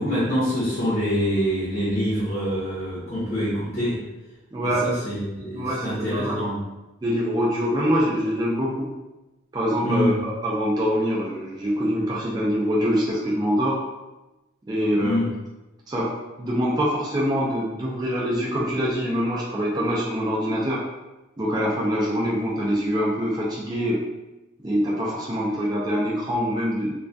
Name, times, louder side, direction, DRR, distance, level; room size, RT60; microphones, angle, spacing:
voice 1, 0.0-4.0 4.6-6.6 9.8-10.2 14.9-15.3, equal, 30° left, -9 dB, 0.6 m, -25 dB
voice 2, 4.5-4.9 5.5-6.5 7.0-8.9 9.5-10.1 10.4-13.8 14.7-15.2 15.9-16.1 16.4-20.8 21.4-24.1 24.6-26.9, equal, 20° right, -5 dB, 0.3 m, -24 dB
2.2 x 2.2 x 2.5 m, 1.0 s
head